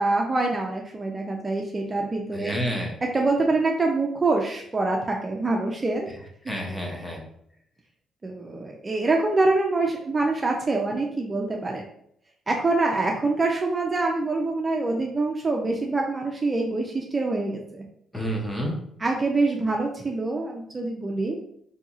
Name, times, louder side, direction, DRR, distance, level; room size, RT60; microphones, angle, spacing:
voice 1, 0.0-2.6 3.1-6.1 6.7-6.8 8.2-11.8 12.5-17.8 19.0-21.4, right 3 dB, 30° right, 0 dB, 0.4 m, -25 dB
voice 2, 2.3-2.9 6.1-6.2 6.5-7.2 18.1-18.8, equal, 10° left, -1 dB, 0.7 m, -29 dB
2.7 x 2.7 x 2.4 m, 0.68 s
cardioid pair, 90°, 0 cm